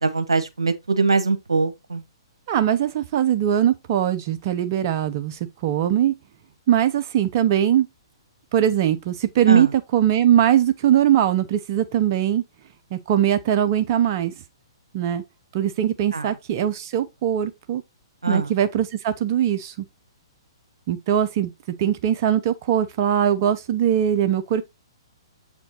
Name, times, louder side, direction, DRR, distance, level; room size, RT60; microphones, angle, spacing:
voice 1, 0.0-2.0 9.5-9.7 16.1-16.3 18.2-18.5, right 4 dB, 85° right, 1.1 m, -22 dB
voice 2, 2.5-6.1 6.7-7.9 8.5-9.7 9.9-12.4 12.9-14.3 14.9-15.2 15.5-17.8 18.3-19.7 20.9-21.5 21.8-24.6, right 10 dB, 45° right, 0.7 m, -21 dB
7.5 x 5.1 x 2.9 m
hypercardioid pair, 125°, 3 cm